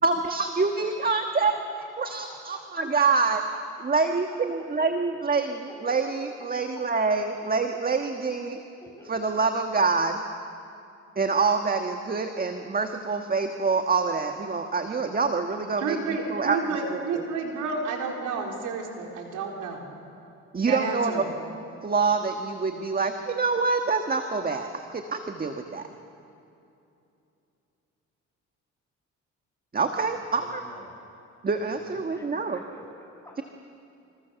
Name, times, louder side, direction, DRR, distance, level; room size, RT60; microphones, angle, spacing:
voice 1, 0.0-1.6 2.0-3.4 3.8-8.6 9.1-10.2 11.1-16.6 16.9-17.2 20.5-21.2 21.8-25.9 29.7-30.6 31.4-32.6, right 4 dB, 30° right, 5 dB, 1.6 m, -26 dB
voice 2, 1.5-3.1 3.8-3.9 5.7-6.3 6.6-7.2 8.8-9.2 30.0-30.9 31.8-33.4, left 1 dB, 10° left, 0 dB, 7.1 m, -48 dB
voice 3, 15.8-19.8 20.7-21.3, right 4 dB, 85° right, 0 dB, 4.2 m, -30 dB
28.0 x 26.5 x 7.1 m, 2.7 s
cardioid pair, 90°, 30 cm